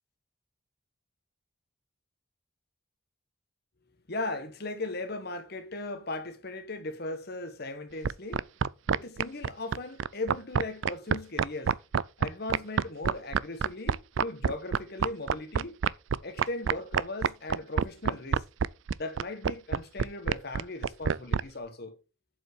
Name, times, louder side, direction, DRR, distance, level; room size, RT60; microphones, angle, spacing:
voice 1, 4.1-8.4 8.9-11.8 12.2-15.8 16.2-18.5 19.0-22.0, left 2 dB, 50° left, 1.5 m, -38 dB
sound 1, 8.0-21.4, right 6 dB, 70° right, 0.4 m, -26 dB
7.5 x 5.4 x 6.3 m
head